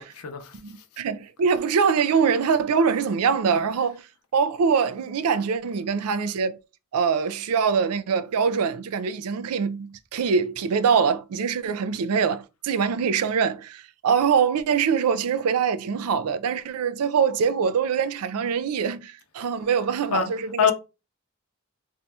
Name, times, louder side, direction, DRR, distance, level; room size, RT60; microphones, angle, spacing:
voice 1, 0.0-0.6 20.1-20.3 20.6-20.7, left 7 dB, 85° left, 0.6 m, -24 dB
voice 2, 0.6-4.0 4.3-6.6 6.9-20.7, right 6 dB, 90° right, 0.4 m, -23 dB
2.6 x 2.3 x 4.1 m
head